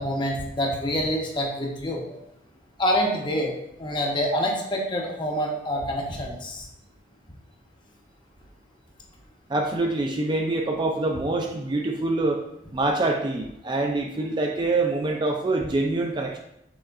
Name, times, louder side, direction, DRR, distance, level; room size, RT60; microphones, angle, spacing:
voice 1, 0.0-2.2 2.8-6.7, equal, 25° left, 0 dB, 0.8 m, -27 dB
voice 2, 9.5-12.4 12.7-16.4, right 2 dB, 25° right, 2 dB, 0.3 m, -25 dB
6.1 x 3.6 x 2.3 m, 0.82 s
head